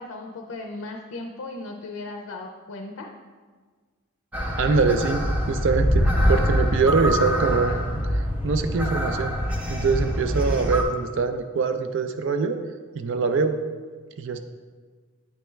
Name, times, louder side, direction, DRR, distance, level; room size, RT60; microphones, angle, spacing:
voice 1, 0.0-3.1, left 2 dB, 65° left, 2 dB, 0.5 m, -36 dB
sound 1, 4.3-10.8, equal, 5° right, 0.6 m, -24 dB
voice 2, 4.5-9.4 9.7-12.6 12.9-13.6 14.2-14.4, right 4 dB, 55° right, 8 dB, 0.4 m, -24 dB
8.7 x 3.4 x 3.2 m, 1.5 s
head